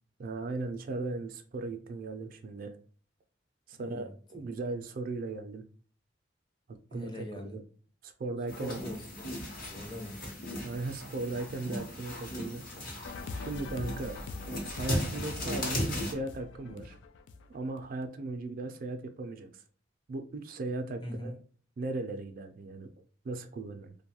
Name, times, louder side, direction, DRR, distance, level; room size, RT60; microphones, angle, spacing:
voice 1, 0.2-2.8 3.7-5.6 6.9-7.6 8.0-8.8 10.6-12.7 13.3-14.2 14.6-17.0 17.5-19.5 20.1-21.3 21.8-22.9 23.2-23.9, right 2 dB, 50° right, 6 dB, 0.4 m, -37 dB
voice 2, 3.7-4.4 6.9-7.6 8.6-9.3 9.7-10.4 16.6-16.8 21.0-21.4, left 1 dB, 25° left, 2 dB, 0.6 m, -42 dB
sound 1, 8.5-16.1, left 1 dB, 50° left, 0.9 m, -37 dB
sound 2, 13.0-18.1, left 3 dB, 80° left, 0.3 m, -43 dB
2.6 x 2.2 x 2.8 m, 0.42 s
head